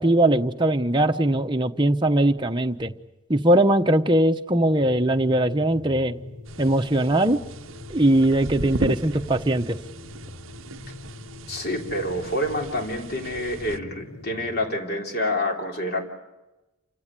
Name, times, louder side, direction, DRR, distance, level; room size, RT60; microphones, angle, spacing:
voice 1, 0.0-2.9 3.3-6.1 6.6-7.4 7.9-9.8, right 1 dB, 20° right, 5 dB, 1.0 m, -20 dB
sound 1, 4.6-14.8, left 2 dB, 85° left, 3.8 m, -42 dB
sound 2, 6.5-13.8, right 3 dB, 65° right, 0.8 m, -36 dB
voice 2, 11.5-16.0, left 1 dB, 45° left, 2 dB, 3.4 m, -27 dB
29.0 x 16.5 x 9.9 m, 1.0 s
head